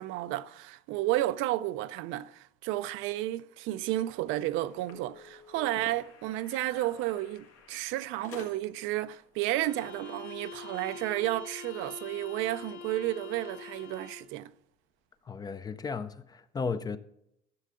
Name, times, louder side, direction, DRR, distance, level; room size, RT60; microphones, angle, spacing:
voice 1, 0.0-14.5, right 15 dB, 75° right, 0.5 m, -32 dB
sound 1, 4.2-8.9, left 5 dB, 80° left, 2.0 m, -50 dB
sound 2, 9.4-14.4, left 6 dB, 60° left, 1.2 m, -45 dB
voice 2, 15.3-17.0, left 5 dB, 20° left, 0.4 m, -35 dB
13.0 x 6.5 x 3.7 m
cardioid pair, 145°, 20 cm